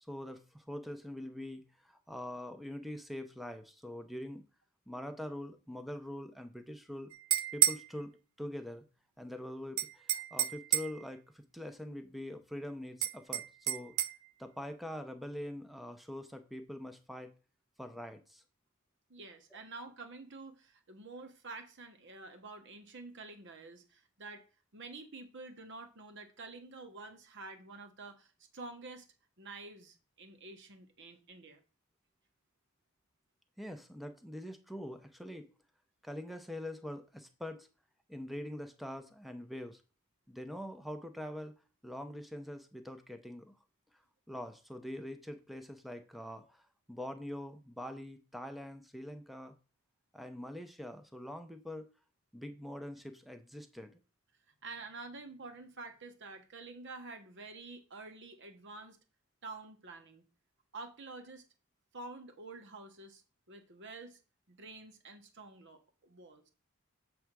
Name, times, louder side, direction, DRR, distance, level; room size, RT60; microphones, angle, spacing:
voice 1, 0.0-4.4 4.9-7.1 7.5-8.1 8.4-8.8 9.2-14.0 14.4-17.3 17.8-18.4 19.5-19.6 33.6-35.5 36.0-37.7 38.1-39.8 40.3-41.5 41.8-43.6 44.3-46.6 46.9-49.5 50.1-51.9 52.3-54.0, left 1 dB, ahead, 0.7 m, -44 dB
sound 1, 7.1-7.9 9.8-11.0 13.0-14.1, right 12 dB, 70° right, 0.5 m, -30 dB
voice 2, 19.1-24.5 24.7-29.1 29.4-31.6 54.6-59.0 59.4-60.2 60.7-61.4 61.9-63.2 63.5-64.2 64.5-66.5, right 3 dB, 55° right, 1.2 m, -48 dB
7.8 x 3.5 x 6.1 m
head